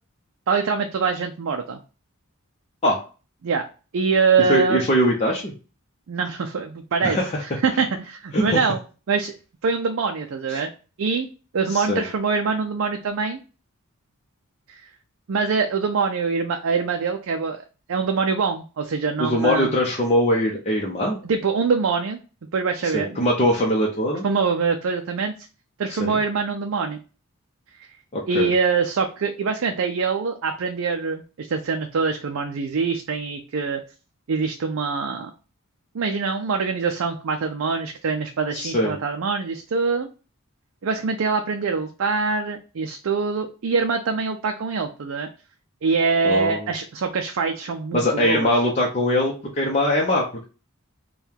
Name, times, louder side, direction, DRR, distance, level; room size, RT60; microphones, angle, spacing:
voice 1, 0.5-1.8 3.4-3.6 3.9-4.8 6.1-8.8 9.1-9.3 9.6-10.7 11.0-11.3 11.5-13.4 14.7-14.8 15.3-17.6 17.9-19.7 21.2-22.2 22.5-23.2 24.2-25.3 25.8-27.0 27.8-27.9 28.3-33.8 34.3-35.3 35.9-40.1 40.8-45.3 45.8-48.6, right 5 dB, 60° right, 4 dB, 0.4 m, -24 dB
voice 2, 4.5-5.5 7.0-7.4 8.3-8.6 10.5-10.6 11.7-12.0 19.2-21.2 22.8-24.2 25.9-26.2 28.1-28.5 38.5-38.9 46.2-46.7 47.9-50.5, left 1 dB, 30° left, -2 dB, 0.7 m, -22 dB
4.5 x 2.3 x 3.5 m, 0.34 s
head